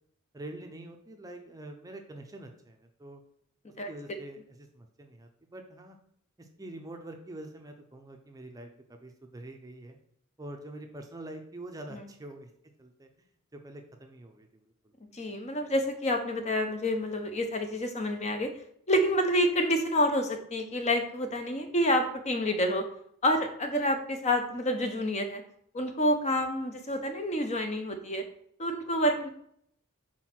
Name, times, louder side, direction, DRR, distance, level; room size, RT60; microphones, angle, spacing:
voice 1, 0.3-3.2 3.9-6.0 6.4-10.0 10.4-12.5 12.8-13.1 13.5-14.6, right 1 dB, 15° right, 3 dB, 0.6 m, -45 dB
voice 2, 15.1-18.5 18.9-22.9 23.2-25.4 25.7-28.2 28.6-29.3, equal, 30° left, 5 dB, 0.7 m, -28 dB
4.6 x 4.4 x 5.8 m, 0.67 s
head